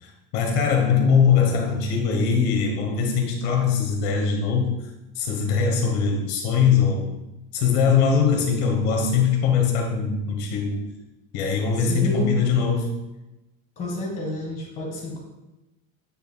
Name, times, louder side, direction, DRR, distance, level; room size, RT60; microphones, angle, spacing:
voice 1, 0.0-4.7 5.1-7.1 7.5-10.9 11.3-12.9, left 6 dB, 50° left, 1 dB, 1.2 m, -21 dB
voice 2, 11.8-12.3 13.8-15.2, left 2 dB, 25° left, -2 dB, 1.7 m, -29 dB
8.3 x 6.1 x 2.3 m, 0.97 s
cardioid pair, 180°, 29 cm